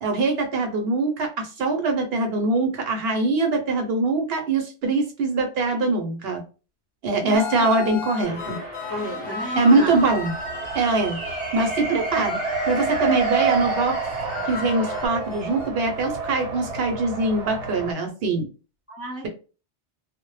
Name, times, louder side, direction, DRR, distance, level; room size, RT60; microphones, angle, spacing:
voice 1, 0.0-6.4 7.0-8.6 9.6-10.3 10.7-12.4 12.7-13.9 14.4-18.5, right 3 dB, 65° right, 3 dB, 0.8 m, -23 dB
voice 2, 7.2-8.0 8.9-10.1 18.9-19.3, equal, 20° left, -4 dB, 0.4 m, -33 dB
sound 1, 7.3-15.7, left 8 dB, 60° left, 0.7 m, -38 dB
sound 2, 8.2-15.1, equal, 35° right, 0.6 m, -34 dB
Race car auto racing, 9.8-17.9, right 4 dB, 85° right, 1.0 m, -29 dB
2.0 x 2.0 x 3.0 m, 0.34 s
omnidirectional pair, 1.2 m